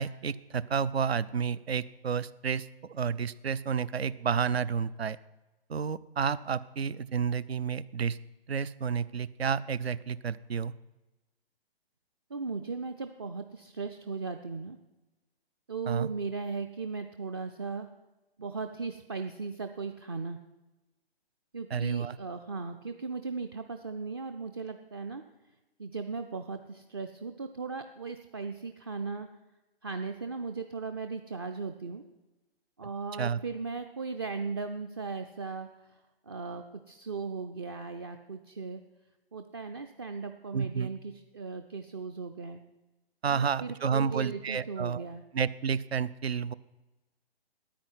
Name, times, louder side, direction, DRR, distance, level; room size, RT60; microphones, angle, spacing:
voice 1, 0.0-5.2 5.7-8.2 8.5-10.7 15.9-16.1 21.7-22.2 33.2-33.4 40.5-40.9 43.2-45.0 45.3-46.5, right 6 dB, 75° right, 19 dB, 0.7 m, -30 dB
voice 2, 12.3-14.8 15.7-17.9 18.4-20.4 21.5-25.2 25.8-29.3 29.8-32.0 32.8-36.0 36.2-38.8 39.3-42.6 43.2-45.2, right 4 dB, 25° right, 8 dB, 0.4 m, -37 dB
10.0 x 9.1 x 9.5 m, 1.1 s
figure-of-eight pair, 135°, 31 cm